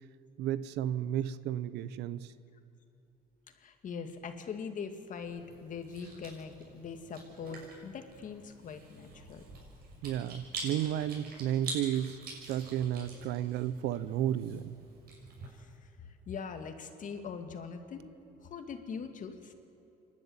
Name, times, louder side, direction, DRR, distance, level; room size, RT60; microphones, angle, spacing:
voice 1, 0.4-2.3 10.0-12.2 12.5-14.7, right 11 dB, 85° right, 16 dB, 0.8 m, -32 dB
voice 2, 3.6-9.4 15.5-18.1 18.4-19.5, left 6 dB, 50° left, 6 dB, 2.2 m, -42 dB
Chewing mastication, 5.2-15.5, right 3 dB, 65° right, 6.3 m, -46 dB
27.5 x 12.0 x 9.7 m, 2.8 s
cardioid pair, 110°, 17 cm